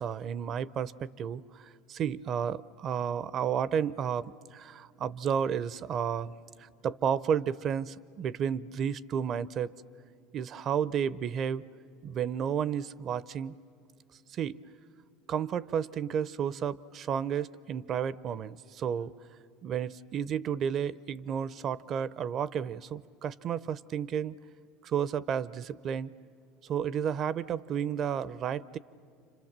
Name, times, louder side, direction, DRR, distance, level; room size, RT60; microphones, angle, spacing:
voice 1, 0.0-6.3 6.6-9.7 10.3-11.6 12.0-13.5 14.3-14.6 15.3-19.1 19.6-24.4 24.8-26.1 26.6-28.8, right 8 dB, 45° right, 19 dB, 0.6 m, -32 dB
29.0 x 26.0 x 7.4 m, 2.3 s
supercardioid pair, 95°, 0 cm